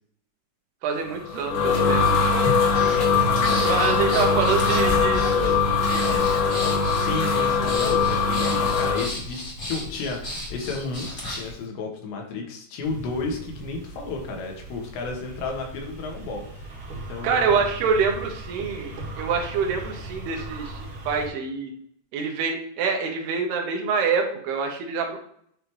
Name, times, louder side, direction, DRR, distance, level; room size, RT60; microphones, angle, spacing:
voice 1, 0.8-2.1 3.6-5.5 5.9-6.2 17.2-21.7 22.1-25.2, right 5 dB, 75° right, 2 dB, 2.8 m, -26 dB
sound 1, 1.1-9.1, left 4 dB, 65° left, 2.9 m, -21 dB
Breathing, 2.7-11.5, left 1 dB, 25° left, 2.0 m, -35 dB
voice 2, 3.3-3.9 6.9-16.4 16.9-17.7, left 4 dB, 80° left, 1 dB, 3.5 m, -33 dB
sound 2, 12.8-21.3, right 2 dB, 50° right, 2.7 m, -38 dB
10.0 x 3.4 x 3.1 m, 0.66 s
omnidirectional pair, 5.0 m